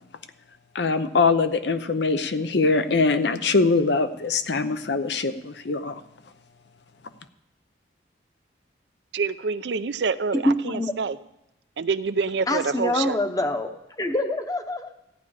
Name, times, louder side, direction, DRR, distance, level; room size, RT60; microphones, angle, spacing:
voice 1, 0.7-6.0, left 4 dB, 70° left, 10 dB, 0.7 m, -23 dB
voice 2, 9.1-11.2 11.8-13.2, right 5 dB, 70° right, 14 dB, 0.5 m, -27 dB
voice 3, 10.3-10.9 12.5-13.7 14.0-14.9, left 1 dB, 20° left, 7 dB, 0.9 m, -25 dB
14.5 x 9.8 x 4.8 m, 0.87 s
head